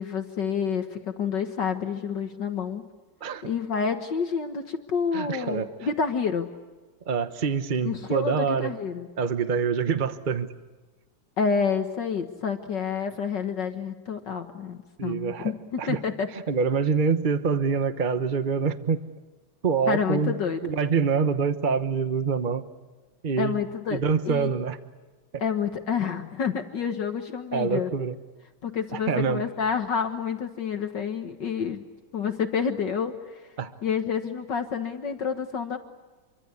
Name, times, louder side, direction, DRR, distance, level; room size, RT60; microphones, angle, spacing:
voice 1, 0.0-2.9 3.4-6.5 7.8-9.1 11.4-16.3 19.9-20.6 23.4-24.0 24.3-24.5 25.4-27.9 28.6-31.8 32.1-33.5 33.8-35.8, left 6 dB, 60° left, 7 dB, 2.0 m, -28 dB
voice 2, 5.1-5.7 7.1-8.7 9.2-10.5 15.0-15.5 15.8-16.0 16.3-19.0 19.6-20.3 20.6-22.6 23.2-23.6 23.9-24.8 27.5-28.2 28.9-29.4 33.6-33.7, right 5 dB, 40° right, 10 dB, 0.7 m, -25 dB
27.5 x 24.0 x 8.3 m, 1.3 s
omnidirectional pair, 2.3 m